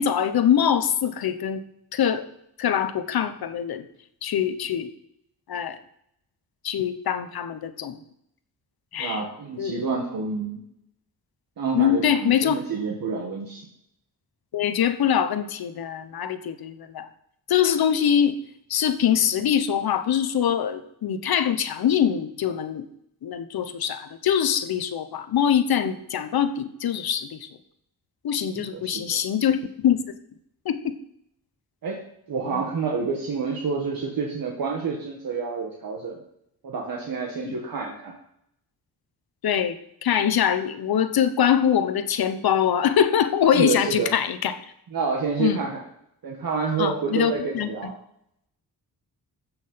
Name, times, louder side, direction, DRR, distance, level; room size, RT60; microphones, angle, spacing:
voice 1, 0.0-1.6 1.9-2.3 2.6-3.8 4.2-4.9 5.5-5.8 6.6-8.0 8.9-9.2 9.6-9.8 11.7-12.6 14.5-17.1 17.5-18.4 18.7-22.9 23.2-27.5 28.2-30.0 30.6-31.0 37.4-37.5 39.4-44.6 45.4-45.6 46.8-47.9, left 9 dB, 80° left, 10 dB, 1.0 m, -23 dB
voice 2, 9.0-10.6 11.6-13.7 28.5-29.2 31.8-32.0 32.3-36.2 36.6-38.1 43.5-44.1 44.9-45.8 46.2-48.0, right 5 dB, 70° right, -1 dB, 1.8 m, -28 dB
14.5 x 6.3 x 5.7 m, 0.75 s
wide cardioid pair, 140°, 36 cm